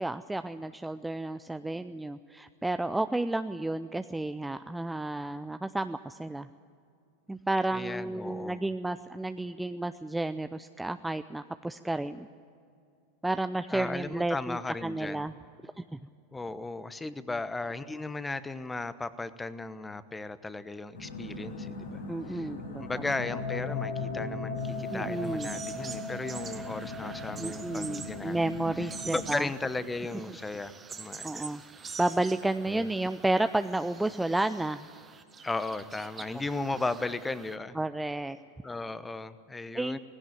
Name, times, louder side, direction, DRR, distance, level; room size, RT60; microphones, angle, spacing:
voice 1, 0.0-6.5 7.3-12.3 13.2-15.3 15.6-16.0 17.0-17.1 22.1-22.8 24.9-25.5 27.3-29.5 31.2-31.6 32.0-34.9 37.7-38.4 39.7-40.0, right 2 dB, 5° right, 10 dB, 0.5 m, -31 dB
voice 2, 7.7-8.6 13.7-15.3 16.3-22.0 22.3-22.5 22.8-28.4 28.8-31.5 32.7-32.9 35.4-37.7 38.6-40.0, left 3 dB, 10° left, 14 dB, 1.0 m, -36 dB
sound 1, 20.9-29.3, left 3 dB, 85° left, 6.5 m, -37 dB
sound 2, 24.6-37.6, right 5 dB, 25° right, 1.3 m, -46 dB
18.0 x 16.5 x 9.2 m, 2.5 s
hypercardioid pair, 90°, 0 cm